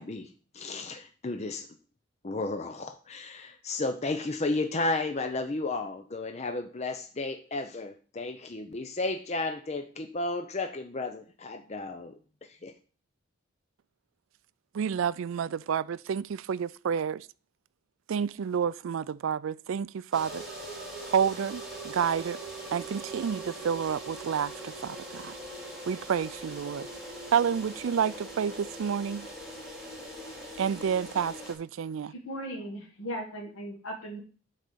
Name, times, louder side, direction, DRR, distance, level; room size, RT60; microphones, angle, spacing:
voice 1, 0.0-1.6 2.2-12.1 12.5-12.7, left 2 dB, 30° left, 0.6 m, -33 dB
voice 2, 14.7-17.3 18.1-20.4 21.0-22.4 22.7-25.3 25.9-26.9 27.3-29.3 30.6-32.1, right 7 dB, 65° right, 0.3 m, -29 dB
sound 1, 20.1-31.5, right 1 dB, ahead, 2.7 m, -41 dB
voice 3, 32.1-34.2, equal, 75° left, 1.7 m, -38 dB
9.6 x 4.1 x 6.7 m
head